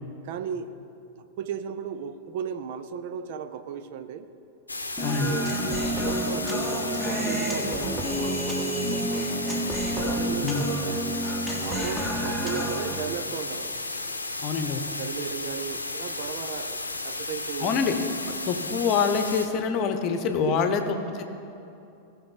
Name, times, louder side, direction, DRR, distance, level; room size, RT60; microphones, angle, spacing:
voice 1, 0.2-0.7 1.2-4.3 5.2-5.6 6.0-9.4 9.9-11.1 11.6-13.7 15.0-17.8 20.5-20.8, right 8 dB, 50° right, 10 dB, 0.6 m, -35 dB
sound 1, 4.7-19.5, left 2 dB, 80° left, 0.7 m, -34 dB
voice 2, 5.0-5.3 10.4-10.7 14.4-14.8 17.6-18.0 18.3-21.2, left 6 dB, 40° left, 7 dB, 0.9 m, -26 dB
Human voice, 5.0-13.0, right 1 dB, 10° right, 1.7 m, -29 dB
18.5 x 6.4 x 4.0 m, 2.7 s
figure-of-eight pair, 90°, 0 cm